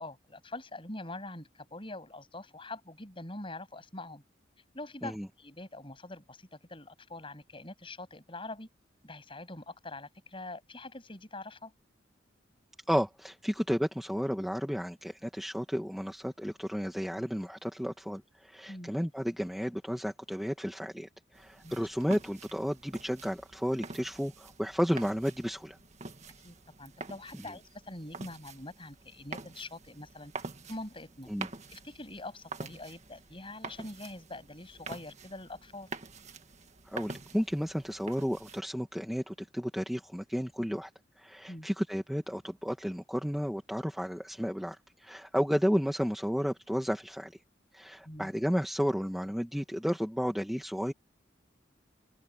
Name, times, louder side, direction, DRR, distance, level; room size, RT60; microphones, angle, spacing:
voice 1, 0.0-4.2 4.7-8.7 9.0-11.7 18.7-18.9 21.6-21.8 26.4-30.3 30.7-31.3 31.7-35.9 41.5-41.7 48.0-48.3, left 2 dB, 30° left, 7.9 m, -44 dB
voice 2, 12.9-25.8 27.3-27.5 31.3-31.5 36.9-40.9 41.2-47.3 47.7-50.9, equal, ahead, 1.6 m, -32 dB
sound 1, 21.3-38.6, right 3 dB, 40° right, 1.8 m, -46 dB
head